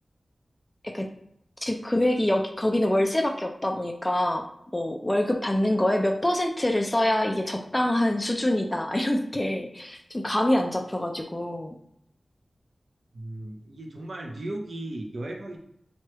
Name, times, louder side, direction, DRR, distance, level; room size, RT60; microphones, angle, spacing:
voice 1, 1.6-4.5 4.7-11.8, left 1 dB, 15° left, 3 dB, 0.3 m, -25 dB
voice 2, 13.1-15.6, right 1 dB, 65° right, 1 dB, 0.6 m, -36 dB
3.1 x 2.2 x 3.0 m, 0.74 s
wide cardioid pair, 90°, 0 cm